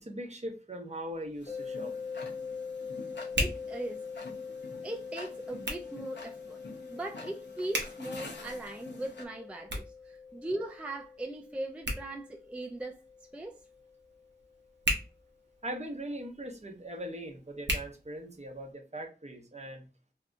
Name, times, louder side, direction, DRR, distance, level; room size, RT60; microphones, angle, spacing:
voice 1, 0.0-1.9 15.6-19.9, right 1 dB, 40° right, 0.7 m, -40 dB
Hands, 1.1-18.7, right 1 dB, 80° right, 0.7 m, -41 dB
Tick-tock, 1.4-9.2, left 2 dB, 80° left, 0.6 m, -48 dB
sound 1, 1.5-14.5, left 5 dB, 40° left, 0.8 m, -44 dB
voice 2, 3.4-4.0 4.8-6.6 6.9-13.0 13.3-13.6, right 1 dB, 5° right, 0.3 m, -39 dB
2.7 x 2.3 x 2.4 m
wide cardioid pair, 45°, 18 cm